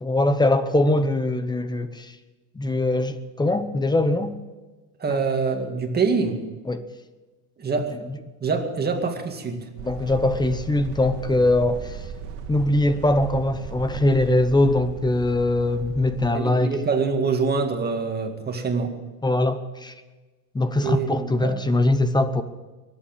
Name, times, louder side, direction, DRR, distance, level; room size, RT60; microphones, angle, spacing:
voice 1, 0.0-2.2 2.5-4.3 5.1-5.2 6.7-6.9 9.8-12.0 12.5-16.7 19.2-19.9 20.5-22.4, left 2 dB, 10° left, 0.8 m, -22 dB
voice 2, 5.0-6.4 7.6-8.0 8.4-9.7 16.3-18.9 20.8-21.6, right 4 dB, 20° right, 2.1 m, -25 dB
sound 1, 9.8-16.3, right 7 dB, 60° right, 2.0 m, -37 dB
22.5 x 8.7 x 7.3 m
supercardioid pair, 125°, 46 cm